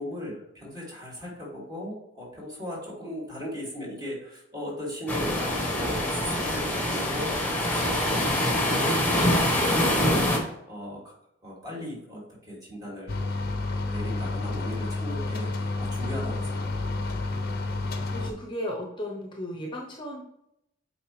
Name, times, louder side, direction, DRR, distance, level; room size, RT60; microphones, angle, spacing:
voice 1, 0.0-11.1 11.4-13.2 13.9-17.3, left 1 dB, 20° right, -5 dB, 2.5 m, -38 dB
sound 1, 5.1-10.4, left 1 dB, 10° left, 1.3 m, -25 dB
sound 2, 13.1-18.3, left 3 dB, 50° left, 0.7 m, -30 dB
voice 2, 18.1-20.2, equal, 25° left, -1 dB, 0.9 m, -35 dB
8.1 x 4.4 x 3.2 m, 0.80 s
head